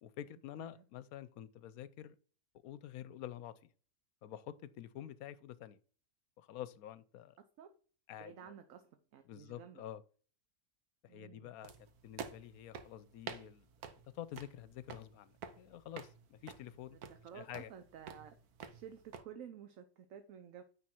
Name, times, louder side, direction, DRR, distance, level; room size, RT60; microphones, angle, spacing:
voice 1, 0.0-2.2 2.6-3.7 4.2-5.8 6.4-7.4 8.1-8.5 9.3-10.0 11.0-11.7 12.0-13.7 14.0-17.0 17.3-17.7, left 11 dB, 75° left, 1.1 m, -48 dB
voice 2, 8.2-9.8 11.1-11.5 17.0-18.3 18.7-20.6, right 8 dB, 65° right, 1.1 m, -52 dB
sound 1, 11.6-19.2, right 6 dB, 85° right, 1.4 m, -50 dB
9.3 x 3.7 x 4.4 m
omnidirectional pair, 1.6 m